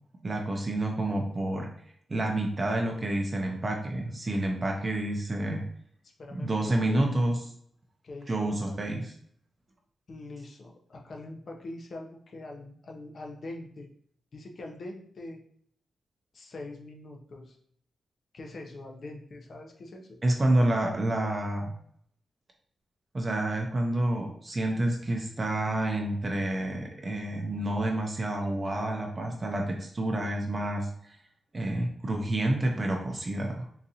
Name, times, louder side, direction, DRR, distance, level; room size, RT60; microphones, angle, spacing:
voice 1, 0.2-1.7 2.1-5.6 6.3-7.4 8.3-9.1 20.2-21.7 23.1-30.9 31.5-33.7, right 1 dB, 30° right, 1 dB, 0.5 m, -28 dB
voice 2, 6.2-7.0 8.0-8.8 10.1-13.9 14.3-15.4 16.3-17.6 18.3-20.2, left 2 dB, 50° left, 1 dB, 0.6 m, -43 dB
3.9 x 2.5 x 2.7 m, 0.65 s
wide cardioid pair, 125°, 0 cm